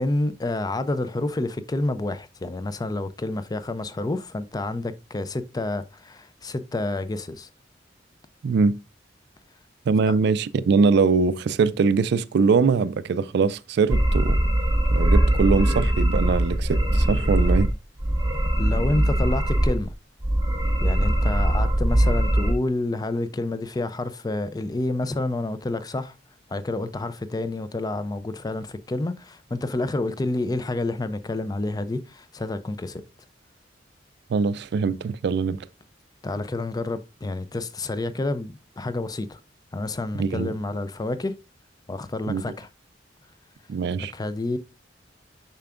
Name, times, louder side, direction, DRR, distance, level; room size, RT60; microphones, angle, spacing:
voice 1, 0.0-7.5 10.1-10.2 18.6-19.9 20.8-26.1 26.5-33.0 36.2-39.4 39.7-41.4 41.9-42.7 44.0-44.6, left 2 dB, 20° left, 0.4 m, -29 dB
voice 2, 8.4-8.8 9.9-14.4 14.9-17.7 34.3-35.6 40.2-40.5 42.3-42.4 43.7-44.1, right 5 dB, 65° right, 0.3 m, -22 dB
sound 1, 13.9-17.7 18.0-19.9 20.2-22.5, right 1 dB, 20° right, 1.0 m, -21 dB
6.9 x 5.7 x 2.4 m
head